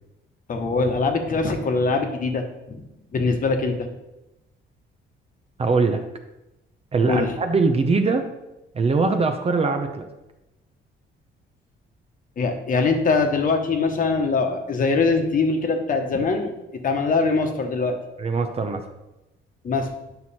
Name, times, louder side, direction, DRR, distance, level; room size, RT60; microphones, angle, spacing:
voice 1, 0.5-2.8 3.1-3.9 7.1-7.3 12.4-18.0 19.6-19.9, left 4 dB, 45° left, 4 dB, 1.2 m, -22 dB
voice 2, 5.6-6.0 6.9-8.3 8.7-10.0 18.2-18.8, right 4 dB, 30° right, 7 dB, 0.7 m, -21 dB
9.3 x 6.2 x 4.2 m, 0.95 s
cardioid pair, 145°, 20 cm